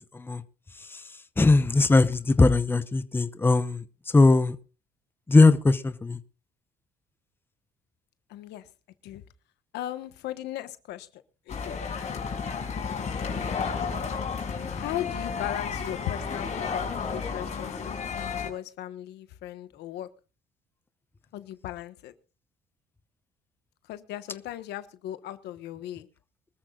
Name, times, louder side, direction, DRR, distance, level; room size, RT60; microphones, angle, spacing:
voice 1, 1.4-3.8 4.1-4.5 5.3-6.2, left 3 dB, 15° left, 0.8 m, -20 dB
voice 2, 8.3-8.7 9.0-9.2 9.7-11.8 14.7-20.1 21.3-22.1 23.9-26.1, left 13 dB, 80° left, 1.3 m, -37 dB
sound 1, 11.5-18.5, left 5 dB, 40° left, 5.1 m, -32 dB
24.5 x 14.0 x 2.5 m
cardioid pair, 110°, 17 cm